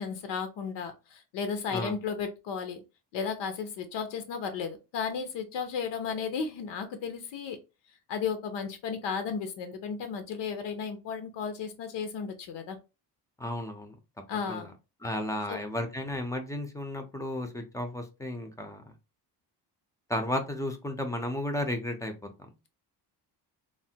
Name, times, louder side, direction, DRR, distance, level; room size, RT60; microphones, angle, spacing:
voice 1, 0.0-2.8 3.1-7.6 8.1-12.8 14.3-14.7 15.5-15.6, left 6 dB, 90° left, 0.7 m, -34 dB
voice 2, 13.4-13.9 14.5-14.7 15.0-18.8 20.1-22.1, left 1 dB, 10° left, 0.4 m, -33 dB
3.2 x 2.1 x 2.7 m
cardioid pair, 145°, 41 cm